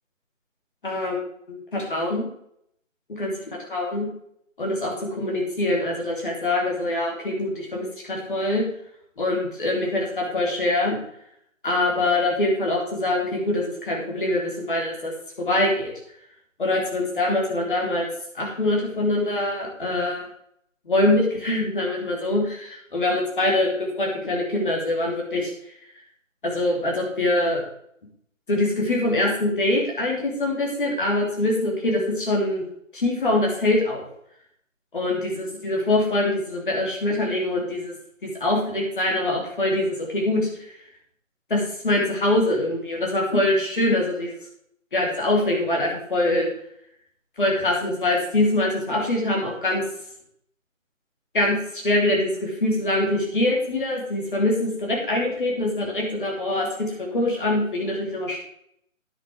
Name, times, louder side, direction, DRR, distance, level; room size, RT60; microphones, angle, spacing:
voice 1, 0.8-1.2 1.5-2.3 3.1-3.3 3.7-4.1 4.6-8.6 9.2-10.9 11.6-15.1 15.4-15.9 16.6-18.1 18.3-20.3 20.8-23.7 24.0-25.5 26.4-27.6 28.5-32.6 32.9-34.0 34.9-37.9 38.2-40.5 41.5-44.3 44.9-46.5 47.4-49.8 51.3-51.6 51.8-56.7 57.0-58.4, left 1 dB, 40° left, -1 dB, 3.3 m, -24 dB
10.0 x 8.3 x 4.9 m, 0.71 s
hypercardioid pair, 175°, 40 cm